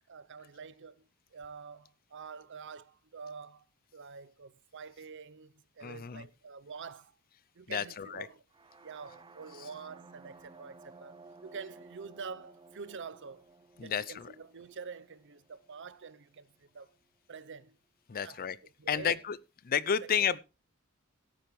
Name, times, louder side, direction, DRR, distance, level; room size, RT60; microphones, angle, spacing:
voice 1, 0.1-3.7 3.9-7.2 7.5-8.4 8.8-13.5 13.8-16.9 17.3-17.8 18.1-18.4 18.8-19.2 20.2-20.4, right 5 dB, 60° right, 0.7 m, -47 dB
voice 2, 5.8-6.3 7.7-8.3 13.8-14.3 18.1-18.6 18.9-19.4 19.6-20.4, left 7 dB, 45° left, 0.5 m, -31 dB
sound 1, 8.5-16.4, right 3 dB, 25° right, 0.7 m, -56 dB
17.0 x 8.9 x 3.2 m
head